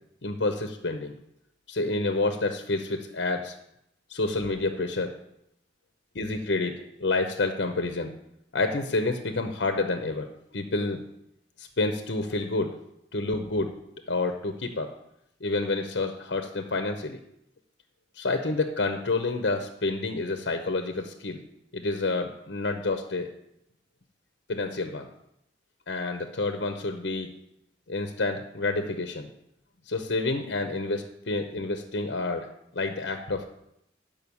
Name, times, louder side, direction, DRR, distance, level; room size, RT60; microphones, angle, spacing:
voice 1, 0.2-1.1 1.7-3.5 4.1-5.2 6.1-8.1 8.5-11.0 11.6-12.7 13.1-13.7 14.1-14.9 15.4-17.2 18.2-21.4 21.7-23.3 24.5-25.1 25.9-27.3 27.9-29.3 29.9-33.4, left 3 dB, 75° left, 6 dB, 0.8 m, -29 dB
11.0 x 5.3 x 7.0 m, 0.78 s
head